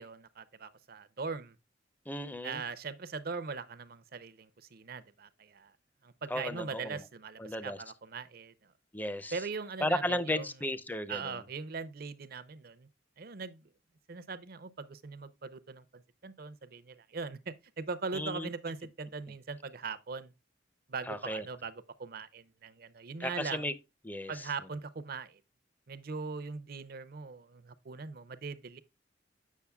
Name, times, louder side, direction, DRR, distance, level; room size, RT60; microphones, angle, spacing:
voice 1, 0.0-1.6 2.4-5.7 6.0-8.7 9.3-10.5 11.1-12.9 13.2-13.7 14.1-20.3 20.9-23.7 24.3-25.4 25.9-28.8, right 4 dB, 55° right, 0.6 m, -41 dB
voice 2, 2.1-2.6 6.3-7.0 7.4-7.8 8.9-9.4 9.8-11.4 18.1-18.5 21.1-21.4 23.2-23.7 24.0-24.5, left 1 dB, 10° left, 0.6 m, -34 dB
8.3 x 6.2 x 2.3 m
head